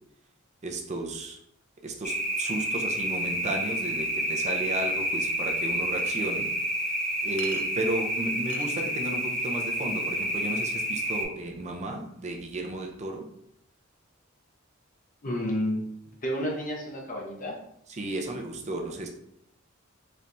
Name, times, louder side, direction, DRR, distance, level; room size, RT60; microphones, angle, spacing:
voice 1, 0.6-1.4 1.8-6.5 7.2-13.3 17.9-19.1, right 1 dB, 35° right, 2 dB, 0.5 m, -33 dB
sound 1, 2.0-11.2, right 1 dB, 5° left, 1.0 m, -29 dB
Chink clink, 6.0-6.1 7.4-7.7 8.5-8.7, right 7 dB, 90° right, 0.5 m, -40 dB
voice 2, 15.2-15.8 16.1-17.6, equal, 40° left, -1 dB, 0.7 m, -30 dB
4.2 x 3.3 x 2.6 m, 0.72 s
head